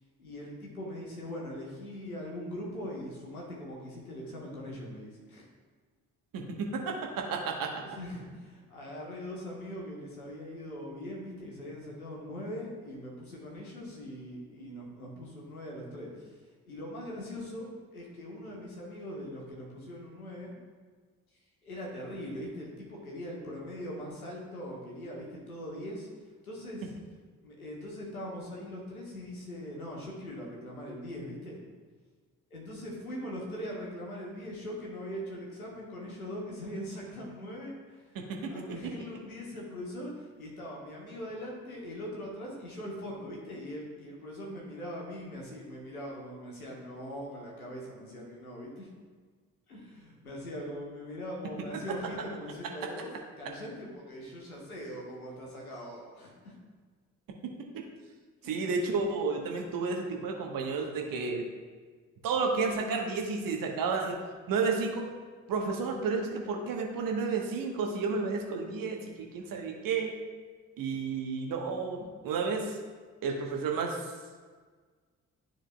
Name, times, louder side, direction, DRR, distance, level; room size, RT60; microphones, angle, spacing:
voice 1, 0.2-5.5 7.8-16.3 16.7-20.6 21.6-26.1 26.4-26.9 27.4-31.6 32.5-48.9 49.7-53.1 53.4-56.5, equal, 85° left, -2 dB, 1.3 m, -41 dB
voice 2, 6.3-7.7 38.1-38.5 38.8-38.9 58.4-61.4 62.2-64.1 64.5-65.0 65.5-69.0 69.3-70.1 70.8-72.7 73.2-74.0, right 4 dB, 50° right, 1 dB, 1.2 m, -31 dB
12.5 x 4.4 x 2.2 m, 1.5 s
figure-of-eight pair, 40°, 42 cm